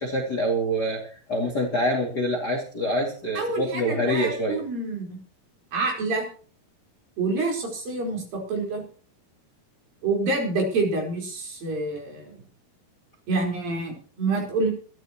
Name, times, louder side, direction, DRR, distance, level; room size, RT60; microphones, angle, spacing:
voice 1, 0.0-4.6, equal, 30° left, 0 dB, 2.5 m, -26 dB
voice 2, 3.3-5.2 5.7-6.3 7.2-8.8 10.0-12.4 13.3-14.7, right 3 dB, 60° right, 0 dB, 6.1 m, -27 dB
22.0 x 14.0 x 3.0 m, 0.40 s
omnidirectional pair, 4.6 m